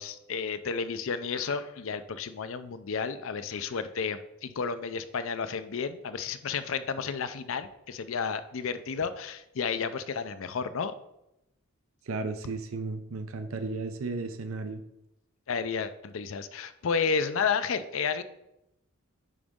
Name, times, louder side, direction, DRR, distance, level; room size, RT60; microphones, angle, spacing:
voice 1, 0.0-10.9 15.5-18.2, left 5 dB, 65° left, 11 dB, 0.5 m, -32 dB
voice 2, 12.1-14.8, right 3 dB, 75° right, 8 dB, 0.6 m, -34 dB
10.0 x 4.0 x 3.6 m, 0.86 s
head